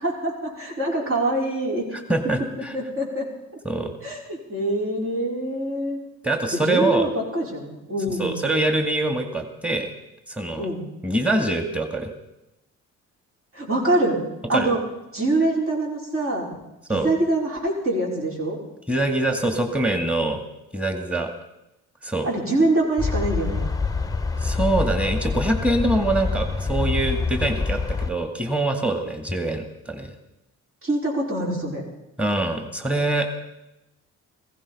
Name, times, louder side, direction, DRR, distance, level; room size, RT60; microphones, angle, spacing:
voice 1, 0.0-1.9 2.7-3.3 4.0-6.0 6.5-8.5 10.6-10.9 13.5-14.2 14.5-14.8 15.1-16.5 16.9-18.6 22.2-23.7 30.8-31.8, right 1 dB, 45° right, -2 dB, 5.4 m, -24 dB
voice 2, 1.9-2.7 3.6-4.0 6.2-7.1 8.1-9.9 10.3-10.7 11.0-12.1 14.5-14.7 16.9-17.1 18.9-20.4 20.7-21.3 22.0-22.3 24.4-30.1 32.2-33.3, right 2 dB, 5° right, 6 dB, 2.1 m, -24 dB
sound 1, 23.0-28.1, left 4 dB, 10° left, 0.9 m, -26 dB
16.0 x 15.5 x 5.6 m, 0.90 s
cardioid pair, 90°, 30 cm